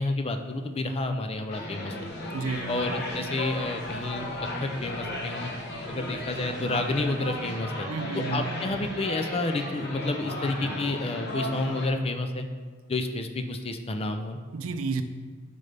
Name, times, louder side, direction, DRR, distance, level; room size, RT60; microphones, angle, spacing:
voice 1, 0.0-2.1 2.7-4.3 4.6-5.5 5.9-7.9 8.3-12.5 12.9-14.4, left 2 dB, 30° left, 6 dB, 0.5 m, -30 dB
sound 1, 1.5-11.9, left 1 dB, 50° left, 1.4 m, -35 dB
sound 2, 2.1-7.6, equal, 90° left, 1.4 m, -48 dB
voice 2, 2.3-2.7 7.9-8.5 14.5-15.0, right 4 dB, 70° right, 9 dB, 0.5 m, -31 dB
10.5 x 5.3 x 3.4 m, 1.6 s
head